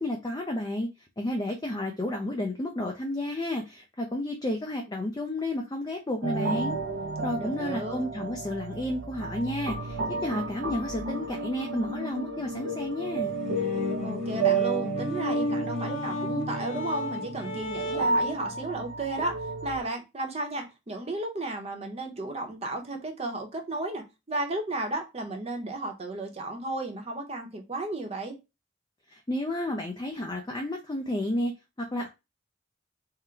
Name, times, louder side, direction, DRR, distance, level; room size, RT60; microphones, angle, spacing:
voice 1, 0.0-0.9 1.2-6.8 7.2-13.3 29.1-31.5 31.8-32.1, left 1 dB, 20° left, 0.5 m, -31 dB
sound 1, 6.2-19.8, right 3 dB, 75° right, 0.6 m, -32 dB
voice 2, 7.4-8.0 14.0-28.4, right 2 dB, 35° right, 0.8 m, -34 dB
sound 2, 13.3-18.3, equal, 85° left, 1.7 m, -33 dB
3.8 x 2.2 x 4.4 m
head